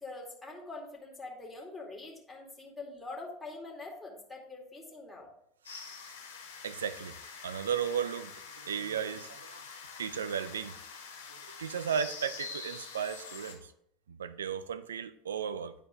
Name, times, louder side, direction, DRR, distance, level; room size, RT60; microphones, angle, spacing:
voice 1, 0.0-5.3, left 3 dB, 10° left, -2 dB, 2.3 m, -44 dB
sound 1, 5.6-13.5, left 5 dB, 80° left, 1.4 m, -46 dB
voice 2, 6.6-7.1 7.4-9.6 10.0-10.7 11.3-13.7 14.1-15.7, right 7 dB, 85° right, 13 dB, 0.4 m, -35 dB
9.9 x 4.5 x 3.7 m, 0.74 s
hypercardioid pair, 80°, 0 cm